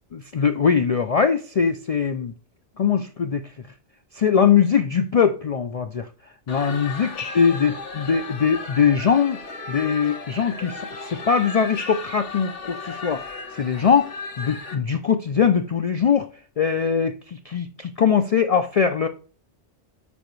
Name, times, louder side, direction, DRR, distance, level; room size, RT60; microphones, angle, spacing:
voice 1, 0.1-2.3 2.8-3.5 4.1-6.1 6.5-9.4 9.7-14.1 14.4-16.3 16.6-19.1, left 7 dB, 70° left, 0.3 m, -21 dB
sound 1, 6.5-14.7, left 3 dB, 90° left, 1.6 m, -35 dB
7.0 x 5.0 x 3.1 m
omnidirectional pair, 1.2 m